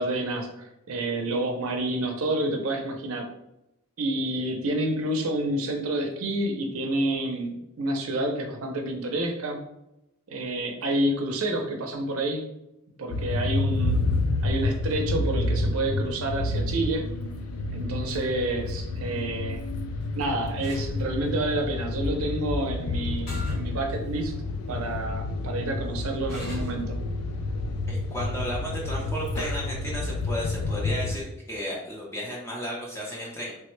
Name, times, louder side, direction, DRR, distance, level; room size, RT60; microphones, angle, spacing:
voice 1, 0.0-3.3 4.0-9.6 10.3-12.5 13.0-14.0 14.4-17.1 17.7-19.6 20.1-24.3 24.7-27.0, right 1 dB, 75° right, 3 dB, 0.5 m, -29 dB
sound 1, 13.1-31.2, left 2 dB, 80° left, 0.3 m, -29 dB
sound 2, 20.6-20.9 23.3-23.6 24.2-24.3 26.3-26.8, left 1 dB, 45° left, 1.0 m, -41 dB
voice 2, 27.9-33.5, equal, 10° left, -3 dB, 0.6 m, -34 dB
3.3 x 2.1 x 3.1 m, 0.88 s
head